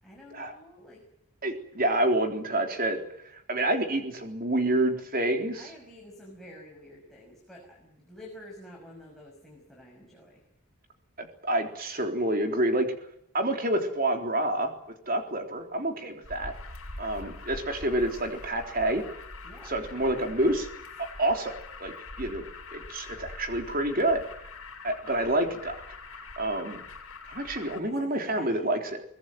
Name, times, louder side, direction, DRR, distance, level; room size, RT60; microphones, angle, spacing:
voice 1, 0.0-1.0 5.6-10.4 19.4-19.8 27.6-28.7, left 1 dB, ahead, -2 dB, 5.8 m, -49 dB
voice 2, 1.4-3.0 3.2-5.7 11.2-12.9 13.3-14.7 15.1-16.5 17.0-19.0 19.6-20.7 21.0-21.5 21.8-21.9 22.2-22.5 22.7-24.2 24.8-25.8 26.4-26.8 27.3-29.0, right 1 dB, 40° right, 5 dB, 3.7 m, -28 dB
Alarm, 16.2-27.8, left 3 dB, 70° left, 7.6 m, -44 dB
23.5 x 20.5 x 9.3 m, 0.71 s
head